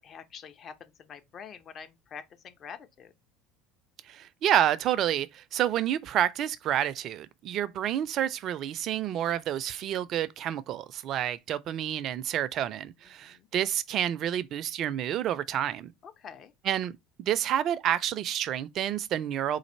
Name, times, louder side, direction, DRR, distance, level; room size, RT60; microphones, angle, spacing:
voice 1, 0.0-3.1 13.0-13.5 16.0-16.5, left 7 dB, 40° left, 0.7 m, -46 dB
voice 2, 4.1-15.9 16.7-19.6, right 11 dB, 45° right, 0.4 m, -29 dB
4.0 x 2.5 x 4.4 m
figure-of-eight pair, 70°, 0 cm